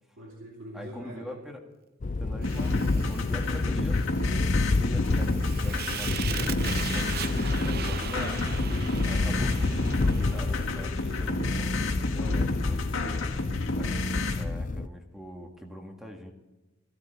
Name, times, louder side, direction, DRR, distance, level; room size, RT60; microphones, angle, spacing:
voice 1, 0.2-1.4 11.9-13.6, equal, 75° right, -3 dB, 2.8 m, -45 dB
voice 2, 0.7-1.6 2.1-4.0 4.7-8.5 9.1-12.8 13.7-16.3, equal, ahead, 2 dB, 1.8 m, -43 dB
sound 1, 2.0-14.9, left 3 dB, 40° left, 0.5 m, -29 dB
sound 2, 2.4-14.4, left 2 dB, 80° left, 1.8 m, -32 dB
Fire, 2.4-11.7, right 7 dB, 50° right, 0.7 m, -39 dB
15.5 x 13.0 x 4.1 m, 1.1 s
head